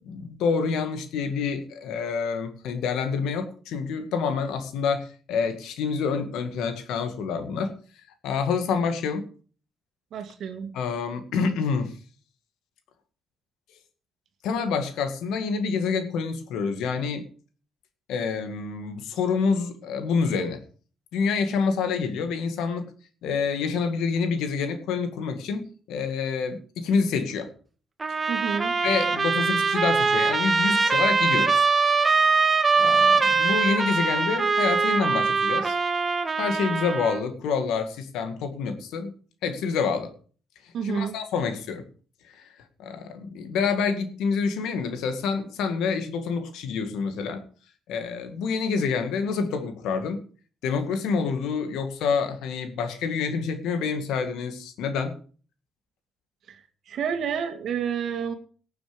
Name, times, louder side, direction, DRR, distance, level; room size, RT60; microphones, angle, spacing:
voice 1, 0.0-7.8 8.2-9.3 10.7-11.9 14.4-17.3 18.1-20.6 21.1-22.9 23.2-27.5 28.1-28.2 28.8-31.6 32.8-35.8 36.4-39.1 39.4-40.1 40.6-41.9 42.2-47.4 47.9-50.2 50.6-55.2, left 5 dB, 90° left, 8 dB, 2.0 m, -27 dB
voice 2, 10.1-10.7 28.3-28.8 40.7-41.2 56.5-58.3, right 7 dB, 70° right, 7 dB, 2.0 m, -30 dB
Trumpet, 28.0-37.2, right 4 dB, 30° right, 1.6 m, -22 dB
18.5 x 7.1 x 5.2 m, 0.41 s
cardioid pair, 90°, 0 cm